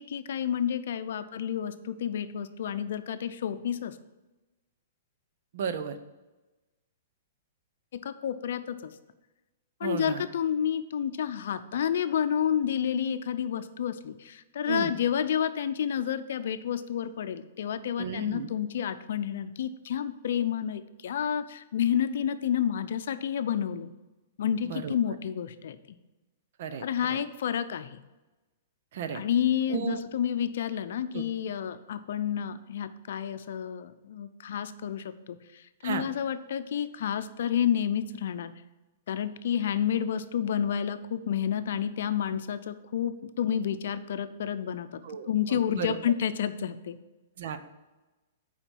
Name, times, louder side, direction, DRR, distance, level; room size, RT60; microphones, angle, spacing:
voice 1, 0.0-4.0 7.9-8.9 9.8-23.9 24.4-26.0 26.8-28.0 29.1-38.5 39.1-44.9 45.3-47.0, left 9 dB, 70° left, 12 dB, 0.6 m, -30 dB
voice 2, 5.5-6.0 9.8-10.2 14.7-14.9 18.0-18.5 24.6-25.2 26.6-27.2 28.9-29.2 29.7-30.0 31.1-31.2 35.8-36.1 45.0-46.0 47.4-47.6, right 6 dB, 60° right, 10 dB, 0.8 m, -34 dB
7.2 x 5.0 x 5.4 m, 1.1 s
hypercardioid pair, 155°, 0 cm